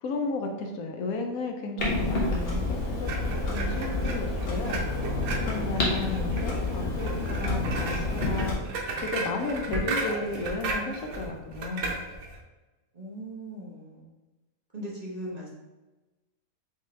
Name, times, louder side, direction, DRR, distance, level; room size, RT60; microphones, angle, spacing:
voice 1, 0.0-3.1 3.5-5.0 5.3-8.6 9.0-11.9, left 3 dB, 80° left, 3 dB, 1.1 m, -33 dB
Clock, 1.8-8.6, left 2 dB, 45° left, 1.2 m, -29 dB
sound 1, 3.0-12.4, right 2 dB, 80° right, 1.3 m, -34 dB
voice 2, 9.6-10.2 12.9-14.1 14.7-15.5, right 1 dB, 35° right, -5 dB, 0.9 m, -39 dB
4.1 x 3.7 x 3.2 m, 1.1 s
omnidirectional pair, 1.5 m